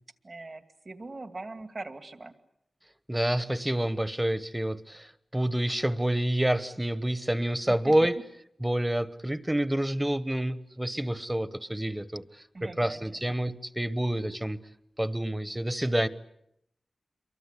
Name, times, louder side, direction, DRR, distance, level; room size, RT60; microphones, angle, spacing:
voice 1, 0.2-2.3 7.7-7.8 12.5-13.2, right 2 dB, 45° right, 8 dB, 2.4 m, -41 dB
voice 2, 3.1-8.2 8.6-12.2 12.6-14.6 15.0-16.1, right 1 dB, 10° right, 14 dB, 1.2 m, -28 dB
28.0 x 23.5 x 8.4 m, 0.77 s
wide cardioid pair, 80°, 0 cm